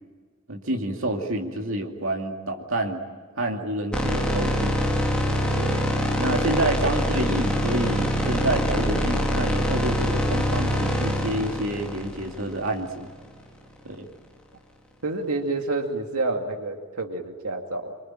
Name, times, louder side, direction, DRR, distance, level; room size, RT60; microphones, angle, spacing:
voice 1, 0.5-3.0 3.4-4.8 5.6-5.9 6.2-13.1 13.8-14.1, right 1 dB, 65° right, 2 dB, 2.4 m, -28 dB
sound 1, 3.9-13.1, equal, 5° left, 3.7 m, -25 dB
voice 2, 15.0-18.0, right 2 dB, 85° right, 4 dB, 2.3 m, -29 dB
26.0 x 24.5 x 8.9 m, 1.5 s
head